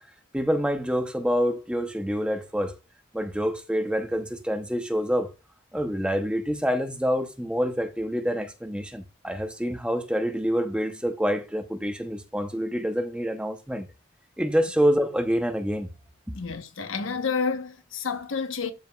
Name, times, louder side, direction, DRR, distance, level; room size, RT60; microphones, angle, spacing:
voice 1, 0.3-2.8 3.1-5.3 5.7-13.9 14.4-15.9 16.3-16.4, equal, 5° right, 0.7 m, -27 dB
voice 2, 16.3-18.7, left 5 dB, 90° left, 1.0 m, -29 dB
12.5 x 5.1 x 2.3 m
head